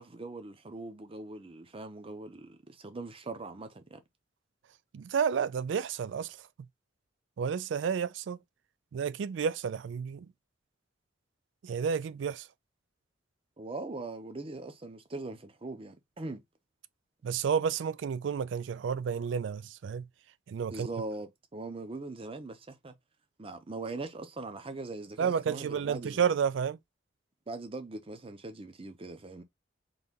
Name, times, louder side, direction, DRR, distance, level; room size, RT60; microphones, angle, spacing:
voice 1, 0.0-4.0 13.6-16.4 20.7-22.9 23.4-26.2 27.5-29.4, right 2 dB, 30° right, 0.7 m, -41 dB
voice 2, 4.9-6.4 7.4-8.4 8.9-10.3 11.6-12.5 17.2-20.0 20.5-20.9 25.2-26.8, right 7 dB, 70° right, 0.3 m, -31 dB
3.9 x 2.7 x 3.6 m
head